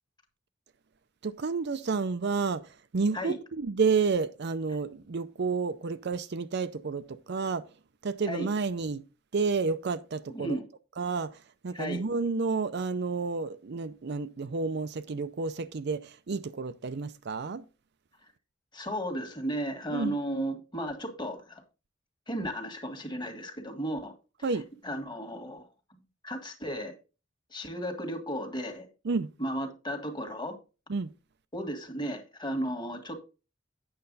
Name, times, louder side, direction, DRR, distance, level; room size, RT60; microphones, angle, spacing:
voice 1, 1.2-7.6 8.0-9.0 9.3-10.6 11.0-17.6 19.9-20.1 24.4-24.7 29.0-29.3 30.9-31.1, right 4 dB, 60° right, 0.5 m, -30 dB
voice 2, 10.3-10.6 11.7-12.0 18.7-21.6 22.3-24.1 24.8-26.9 27.5-28.9 29.4-30.6 31.5-33.2, equal, 25° left, 1.6 m, -34 dB
8.8 x 6.8 x 4.0 m
head